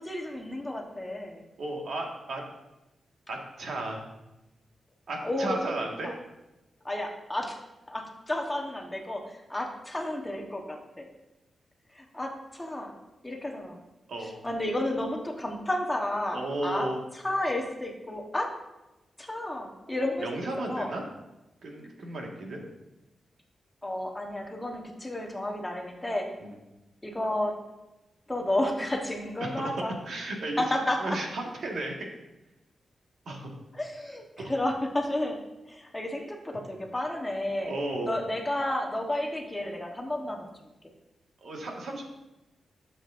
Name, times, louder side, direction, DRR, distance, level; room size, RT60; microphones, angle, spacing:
voice 1, 0.0-1.4 5.2-6.1 6.8-7.6 7.9-11.1 11.9-13.0 13.2-13.8 14.2-16.9 17.2-18.5 19.2-20.3 20.7-20.9 23.8-26.4 27.0-27.6 28.3-30.0 30.6-31.2 33.7-35.4 35.7-37.7 38.0-40.5, left 1 dB, 10° left, 1 dB, 1.0 m, -32 dB
voice 2, 1.6-2.4 3.3-4.0 5.1-6.1 14.1-14.4 16.3-17.0 20.2-21.0 21.6-22.6 26.4-26.6 29.4-29.7 30.1-30.6 31.0-32.1 33.2-33.5 34.4-34.5 37.7-38.1 41.4-42.0, right 2 dB, 65° right, 1 dB, 1.6 m, -34 dB
12.0 x 7.3 x 2.5 m, 1.0 s
wide cardioid pair, 155°, 0 cm